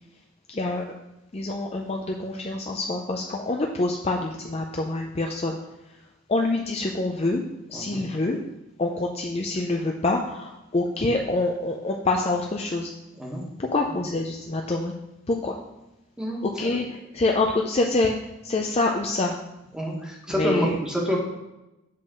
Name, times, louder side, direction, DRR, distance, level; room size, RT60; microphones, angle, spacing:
voice 1, 0.5-0.8 1.3-5.6 6.3-7.4 7.7-8.4 8.8-12.9 13.6-14.9 15.3-15.6 16.4-16.8 17.1-18.2 18.4-19.4 20.3-20.8, left 2 dB, 30° left, 2 dB, 0.4 m, -26 dB
voice 2, 7.7-8.1 13.1-13.5 16.2-16.7 19.7-21.2, equal, 5° right, -3 dB, 1.4 m, -28 dB
7.6 x 3.9 x 6.1 m, 0.96 s
head